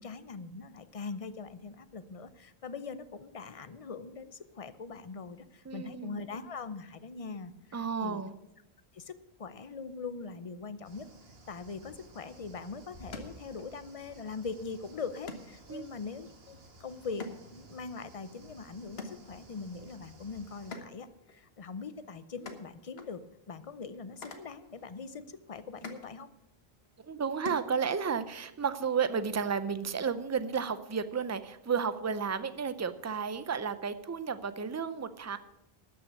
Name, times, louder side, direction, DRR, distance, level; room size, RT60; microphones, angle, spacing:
voice 1, 0.0-8.2 8.9-9.1 9.4-11.1 11.5-17.3 17.5-23.2 23.5-26.3, left 4 dB, 40° left, 13 dB, 0.6 m, -42 dB
voice 2, 5.7-6.2 7.7-8.3 15.7-15.9 27.1-35.4, right 6 dB, 25° right, 13 dB, 0.4 m, -32 dB
sound 1, 10.8-20.8, right 2 dB, 70° right, 1.6 m, -55 dB
sound 2, 12.2-28.3, left 3 dB, 75° left, 1.5 m, -50 dB
13.0 x 6.2 x 8.1 m, 0.91 s
omnidirectional pair, 1.0 m